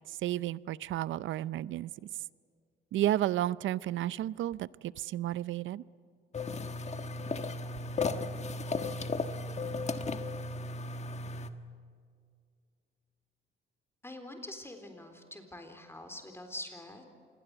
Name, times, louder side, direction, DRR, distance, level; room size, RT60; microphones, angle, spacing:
voice 1, 0.1-1.9 2.9-5.8, right 13 dB, 75° right, 19 dB, 0.6 m, -32 dB
sound 1, 6.3-11.5, left 3 dB, 35° left, 1.5 m, -35 dB
voice 2, 14.0-17.0, left 1 dB, 10° left, 5 dB, 3.9 m, -45 dB
27.5 x 21.0 x 8.0 m, 2.2 s
cardioid pair, 90°, 20 cm